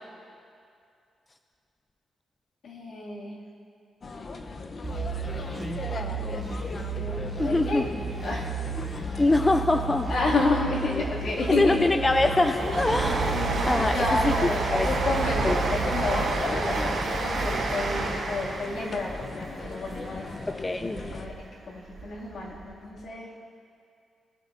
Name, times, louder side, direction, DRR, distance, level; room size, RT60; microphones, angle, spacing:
voice 1, 2.6-3.4 6.0-7.9 8.2-8.5 8.9-9.1 10.1-11.9 13.3-20.3 21.0-21.3 21.7-23.3, left 2 dB, 60° left, -4 dB, 2.3 m, -31 dB
sound 1, 4.0-21.3, left 3 dB, 40° left, 0.7 m, -37 dB
sound 2, 4.8-16.4, right 6 dB, 25° right, 2.0 m, -34 dB
voice 2, 7.4-7.8 8.8-8.9 9.2-10.1 11.6-13.4 13.7-14.3 14.7-14.9 15.4-15.6 20.5-21.1, left 2 dB, 20° left, 7 dB, 0.4 m, -24 dB
Train, 11.6-21.4 21.8-22.7 22.9-23.0, right 2 dB, 85° right, 2.7 m, -30 dB
20.5 x 11.5 x 2.6 m, 2.5 s
cardioid pair, 125°, 0 cm